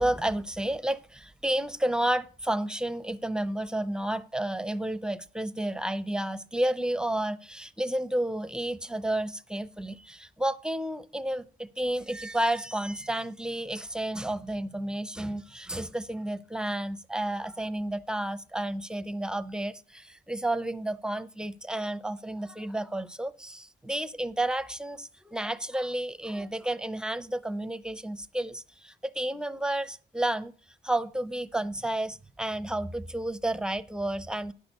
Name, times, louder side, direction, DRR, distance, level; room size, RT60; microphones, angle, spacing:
voice 1, 0.0-30.5 30.8-34.5, right 1 dB, 5° right, 0.6 m, -31 dB
10.0 x 6.2 x 5.3 m
cardioid pair, 90°, 20 cm